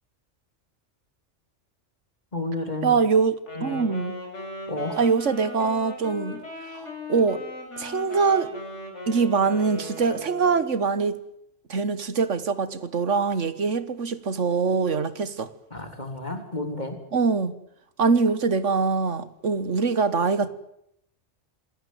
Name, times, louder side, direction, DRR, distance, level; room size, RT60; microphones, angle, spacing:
voice 1, 2.3-3.0 3.6-3.9 4.7-5.0 15.7-17.0, left 2 dB, 35° left, 4.1 m, -31 dB
voice 2, 2.8-4.2 5.0-6.4 6.7-7.4 7.8-8.5 9.1-11.2 11.7-15.5 17.1-17.5 18.0-20.5, right 5 dB, 90° right, 1.8 m, -23 dB
Wind instrument woodwind instrument, 3.4-10.7, left 1 dB, 75° left, 7.0 m, -38 dB
26.5 x 17.5 x 9.4 m
omnidirectional pair, 1.2 m